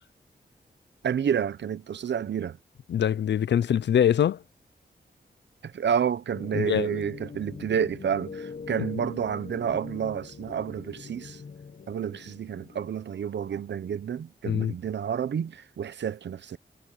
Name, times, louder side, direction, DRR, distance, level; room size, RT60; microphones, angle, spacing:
voice 1, 1.0-2.6 5.6-11.4 11.9-16.6, right 8 dB, 85° right, 0.8 m, -30 dB
voice 2, 2.9-4.4 6.5-7.0 8.8-8.9 14.4-14.7, left 9 dB, 80° left, 0.5 m, -24 dB
sound 1, 6.3-13.5, left 5 dB, 55° left, 1.4 m, -43 dB
wide cardioid pair, 105°, 18 cm